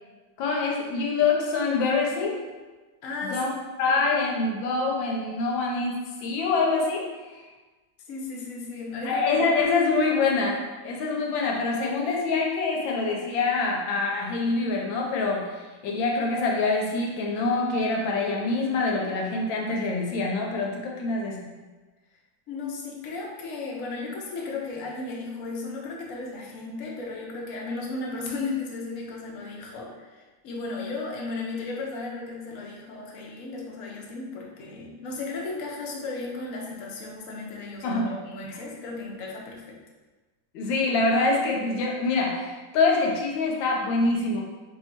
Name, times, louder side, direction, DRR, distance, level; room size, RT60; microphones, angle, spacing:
voice 1, 0.4-2.4 3.2-3.5 3.8-7.1 9.0-21.5 37.8-38.1 40.5-44.4, left 3 dB, 85° left, -1 dB, 1.4 m, -25 dB
voice 2, 3.0-3.6 8.1-9.3 22.5-39.8, left 3 dB, 65° left, -2 dB, 0.9 m, -35 dB
3.0 x 2.7 x 4.3 m, 1.2 s
omnidirectional pair, 2.1 m